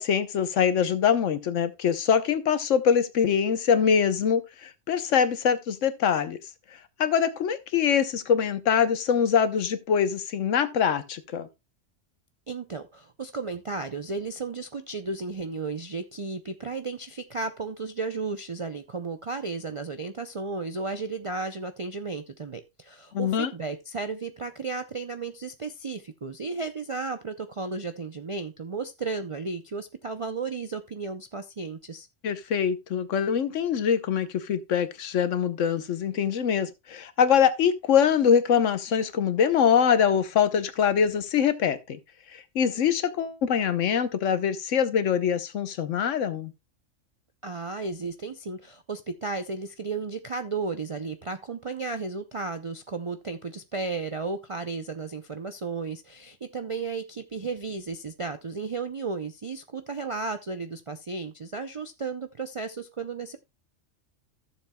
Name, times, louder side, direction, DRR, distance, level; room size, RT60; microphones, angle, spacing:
voice 1, 0.0-6.4 7.0-11.5 23.1-23.5 32.2-42.0 42.3-46.5, left 7 dB, 75° left, 1.2 m, -24 dB
voice 2, 12.5-32.1 47.4-63.4, right 4 dB, 50° right, 0.4 m, -34 dB
14.5 x 7.1 x 2.2 m
omnidirectional pair, 1.3 m